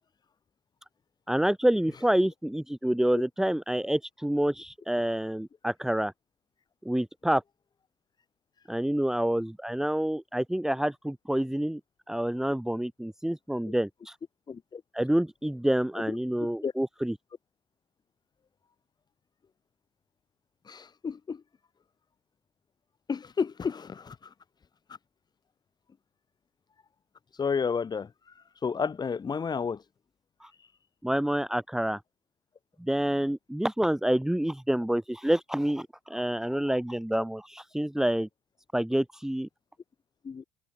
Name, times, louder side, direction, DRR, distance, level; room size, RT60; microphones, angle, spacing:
voice 1, 1.3-6.1 6.8-7.4 8.7-11.8 12.1-14.2 14.9-17.1 30.4-30.5 31.0-32.0 32.8-38.3 38.7-39.5, right 1 dB, 5° right, 2.5 m, -28 dB
voice 2, 14.5-14.8 16.1-16.2 16.6-16.7 20.7-21.4 23.1-24.2 27.4-28.1 28.6-29.8 40.2-40.4, left 6 dB, 30° left, 5.7 m, -31 dB
supercardioid pair, 85°, 13 cm